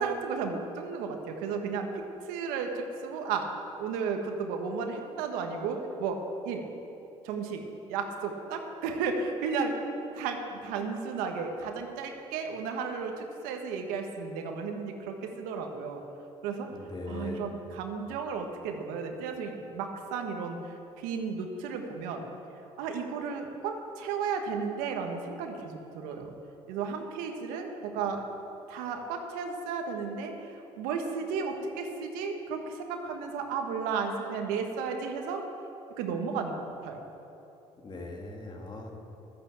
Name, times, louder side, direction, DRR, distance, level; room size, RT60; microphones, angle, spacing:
voice 1, 0.0-3.5 3.8-6.2 6.4-6.6 7.2-7.6 7.9-9.9 10.1-16.0 16.4-16.7 17.1-22.2 22.8-26.3 26.7-28.2 28.7-35.4 36.0-37.0, right 5 dB, 80° right, 4 dB, 1.4 m, -34 dB
voice 2, 16.7-17.5 37.8-38.9, left 2 dB, 30° left, 1 dB, 2.2 m, -39 dB
11.0 x 8.9 x 7.4 m, 2.9 s
supercardioid pair, 75°, 14 cm